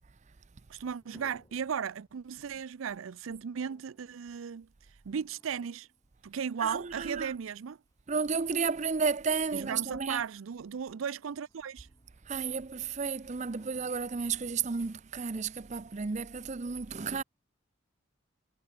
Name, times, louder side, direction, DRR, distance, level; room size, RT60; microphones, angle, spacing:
voice 1, 0.7-4.7 5.1-5.9 6.2-7.8 9.5-11.9, right 7 dB, 90° right, 0.5 m, -36 dB
sound 1, 0.8-10.0 10.7-12.8 13.1-14.7 15.4-15.5 15.9-16.3, equal, 20° left, 3.9 m, -64 dB
voice 2, 6.6-7.3 8.1-10.2 12.3-17.2, right 5 dB, 35° right, 0.5 m, -32 dB
head